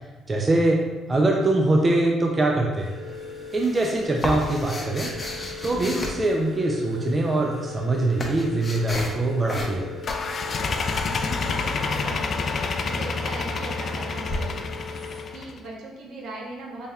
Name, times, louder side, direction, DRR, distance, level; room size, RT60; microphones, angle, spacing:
voice 1, 0.3-0.8 1.1-2.9 3.5-5.1 5.6-9.9, right 2 dB, 30° right, 0 dB, 0.5 m, -23 dB
sound 1, 2.8-15.3, left 3 dB, 15° left, 1.1 m, -39 dB
sound 2, 3.1-6.9 7.6-9.2 9.5-9.8 10.1-12.0 14.3-14.4, left 1 dB, 30° left, 0.7 m, -34 dB
sound 3, 10.0-15.6, left 4 dB, 50° left, 0.3 m, -28 dB
voice 2, 11.0-12.5 12.8-14.6 15.3-16.9, right 2 dB, 75° right, -3 dB, 1.0 m, -39 dB
4.2 x 3.3 x 2.3 m, 1.2 s
cardioid pair, 85°, 0 cm